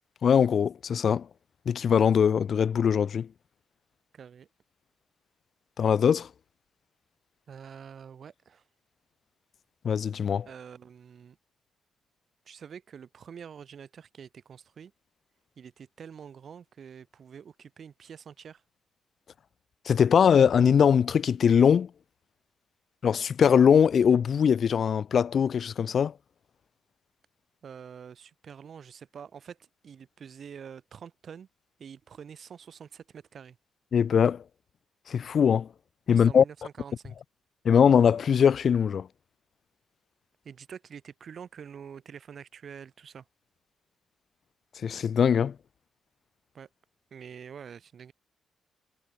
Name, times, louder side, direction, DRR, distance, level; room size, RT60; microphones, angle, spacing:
voice 1, 0.2-1.3 1.7-3.3 5.8-6.3 9.8-10.5 19.9-21.9 23.0-26.1 33.9-34.4 35.1-35.7 36.1-36.4 37.6-39.1 44.8-45.5, left 7 dB, 40° left, 0.7 m, -21 dB
voice 2, 4.1-4.5 7.5-8.6 10.4-11.4 12.4-14.9 15.6-18.6 27.6-31.5 31.8-33.6 36.1-37.2 40.4-43.2 46.5-46.7 47.1-48.1, right 7 dB, 40° right, 4.9 m, -46 dB
cardioid pair, 180°, 0 cm